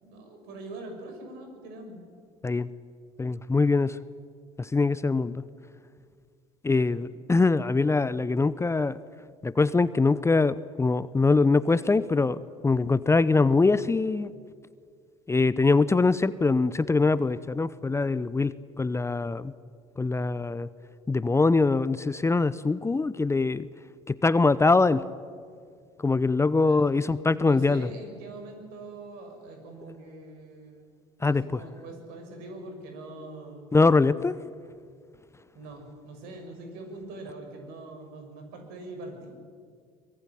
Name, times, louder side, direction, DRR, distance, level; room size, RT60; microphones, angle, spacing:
voice 1, 0.0-2.0 6.8-7.0 26.5-30.9 31.2-33.7 35.5-39.4, right 2 dB, 65° right, 4 dB, 6.5 m, -43 dB
voice 2, 3.2-4.0 4.6-5.4 6.6-9.0 9.4-12.4 12.6-14.3 15.3-19.5 20.0-20.7 21.1-23.7 24.1-25.0 26.0-27.9 31.2-31.6 33.7-34.4, left 3 dB, 15° left, 16 dB, 0.8 m, -23 dB
23.5 x 21.5 x 9.9 m, 2.1 s
hypercardioid pair, 70°, 17 cm